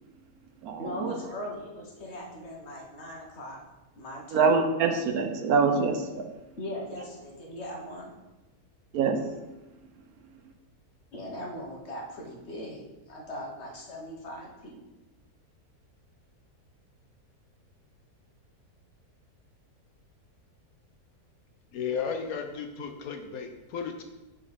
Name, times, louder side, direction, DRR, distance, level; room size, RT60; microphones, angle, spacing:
voice 1, 0.8-3.6 4.0-4.5 6.6-8.1 11.1-14.8, equal, 45° left, -2 dB, 1.4 m, -39 dB
voice 2, 4.3-6.3 8.9-9.2, right 5 dB, 75° right, 6 dB, 1.1 m, -24 dB
voice 3, 21.7-24.0, left 6 dB, 70° left, 5 dB, 1.0 m, -34 dB
6.0 x 5.1 x 4.2 m, 1.1 s
omnidirectional pair, 1.7 m